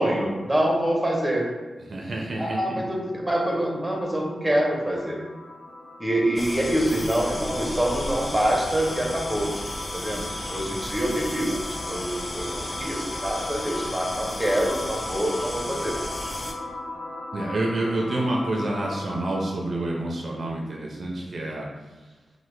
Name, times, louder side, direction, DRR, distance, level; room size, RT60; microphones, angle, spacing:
voice 1, 0.0-1.5 2.4-5.2 6.0-9.5 9.9-11.6 11.9-15.9, right 1 dB, 10° right, -2 dB, 0.7 m, -25 dB
voice 2, 1.9-2.8 15.6-15.7 17.3-21.7, right 1 dB, 55° right, -1 dB, 0.4 m, -28 dB
sound 1, 3.0-19.7, left 2 dB, 70° left, 0.8 m, -38 dB
sound 2, 6.4-16.5, left 1 dB, 30° left, 0.4 m, -34 dB
3.2 x 2.1 x 3.1 m, 1.3 s
wide cardioid pair, 85°, 0 cm